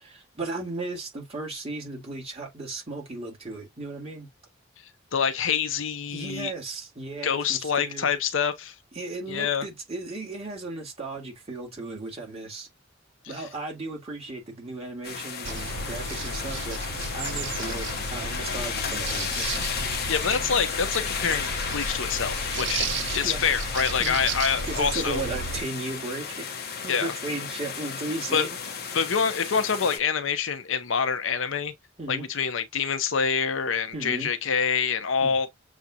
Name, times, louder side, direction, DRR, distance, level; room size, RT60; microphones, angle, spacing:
voice 1, 0.3-4.3 6.1-8.1 8.9-12.7 13.3-19.6 22.8-23.4 24.0-24.3 24.6-26.5 26.8-28.6 32.0-32.3 33.9-34.3 35.2-35.3, right 2 dB, 30° right, 2.0 m, -36 dB
voice 2, 5.1-6.5 7.2-8.7 9.3-9.7 20.1-22.9 23.1-25.2 26.9-27.1 28.3-28.5 28.9-31.7 32.1-35.5, left 6 dB, 85° left, 0.7 m, -26 dB
sound 1, 15.0-30.0, left 6 dB, 55° left, 0.9 m, -33 dB
sound 2, 15.4-25.6, right 3 dB, 65° right, 0.7 m, -33 dB
7.1 x 2.5 x 2.7 m
head